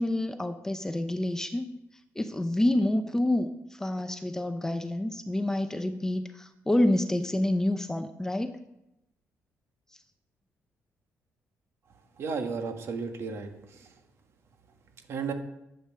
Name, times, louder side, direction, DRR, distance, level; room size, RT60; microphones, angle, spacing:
voice 1, 0.0-1.7 2.2-8.6, left 1 dB, 10° left, 8 dB, 0.6 m, -28 dB
voice 2, 12.2-13.5 13.8-13.9 15.1-15.3, right 5 dB, 55° right, 5 dB, 1.7 m, -33 dB
12.5 x 8.2 x 6.4 m, 0.88 s
cardioid pair, 145°, 5 cm